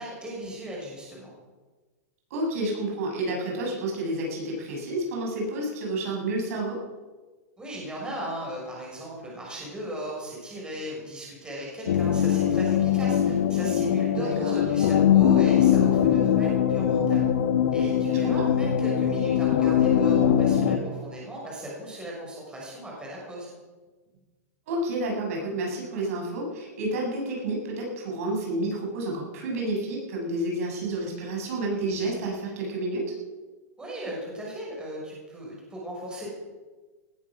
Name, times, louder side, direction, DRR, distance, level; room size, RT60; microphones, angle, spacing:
voice 1, 0.0-1.3 7.6-17.2 17.7-23.5 33.8-36.3, equal, 10° right, -3 dB, 6.3 m, -37 dB
voice 2, 2.3-6.8 14.1-14.5 18.1-18.3 24.7-33.1, right 1 dB, 60° right, -1 dB, 7.1 m, -30 dB
sound 1, 11.9-20.8, left 9 dB, 75° left, 1.4 m, -22 dB
19.5 x 11.5 x 6.3 m, 1.3 s
hypercardioid pair, 140°, 9 cm